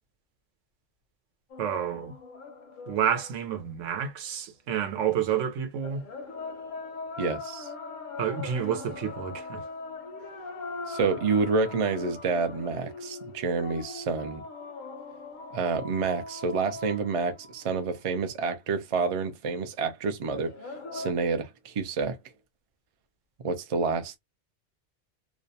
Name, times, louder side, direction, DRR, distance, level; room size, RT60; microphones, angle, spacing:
sound 1, 1.5-4.0 5.8-18.1 20.3-21.1, left 3 dB, 60° left, 0.5 m, -41 dB
voice 1, 1.6-2.1 2.9-6.0 8.2-9.6, right 9 dB, 85° right, 1.0 m, -29 dB
voice 2, 7.2-7.7 10.9-14.4 15.5-20.5 20.9-22.2 23.4-24.2, right 4 dB, 55° right, 0.3 m, -28 dB
2.5 x 2.1 x 2.6 m
omnidirectional pair, 1.3 m